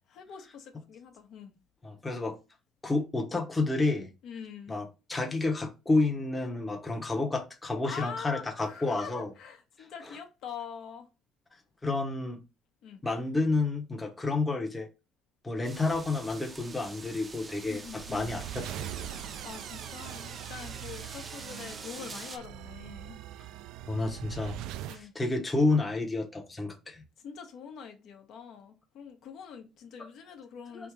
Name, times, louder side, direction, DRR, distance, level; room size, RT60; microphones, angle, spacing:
voice 1, 0.1-1.5 4.2-4.8 7.8-11.1 12.8-13.0 17.7-18.3 19.1-23.2 24.9-25.1 27.2-30.9, left 7 dB, 65° left, 1.0 m, -44 dB
voice 2, 1.8-2.4 2.8-4.1 4.7-9.3 11.8-12.4 13.0-14.9 15.4-18.9 23.9-24.6 24.9-27.0 30.7-30.9, left 3 dB, 15° left, 0.8 m, -30 dB
sound 1, 15.6-22.4, right 4 dB, 25° right, 0.6 m, -46 dB
sound 2, 17.6-25.0, right 12 dB, 80° right, 0.3 m, -42 dB
3.5 x 2.8 x 4.5 m
cardioid pair, 110°, 0 cm